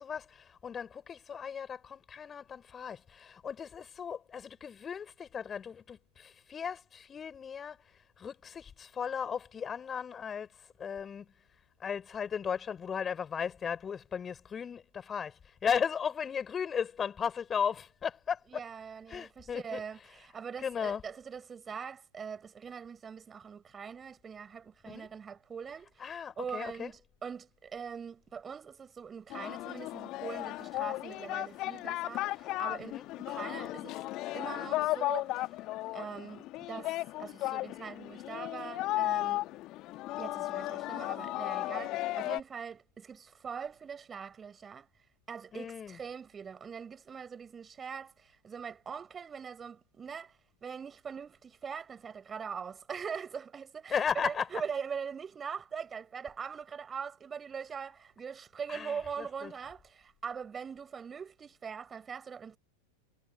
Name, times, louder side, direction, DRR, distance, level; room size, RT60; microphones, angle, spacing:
voice 1, 0.0-7.8 8.2-10.5 10.8-11.3 11.8-18.6 19.1-19.8 20.6-21.0 24.9-25.1 26.0-26.9 32.8-33.1 45.5-46.0 53.9-54.5 58.7-59.5, left 7 dB, 20° left, 5.1 m, -36 dB
voice 2, 18.5-34.0 34.3-35.6 35.9-39.5 40.2-44.9 45.3-62.6, right 6 dB, 20° right, 5.3 m, -42 dB
Singing, 29.3-42.4, left 17 dB, 35° left, 2.0 m, -35 dB
figure-of-eight pair, 90°, 0 cm